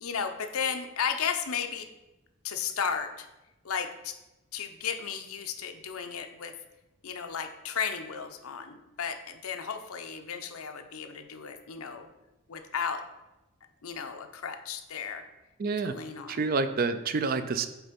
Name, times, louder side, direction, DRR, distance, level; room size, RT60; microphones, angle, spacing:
voice 1, 0.0-1.9 2.4-3.3 3.6-4.2 4.5-6.5 7.0-12.1 12.5-13.0 13.8-15.3 15.8-16.5, left 7 dB, 75° left, 6 dB, 0.7 m, -34 dB
voice 2, 15.6-15.9 16.3-17.7, right 4 dB, 40° right, 11 dB, 0.4 m, -28 dB
8.1 x 3.5 x 5.1 m, 1.0 s
head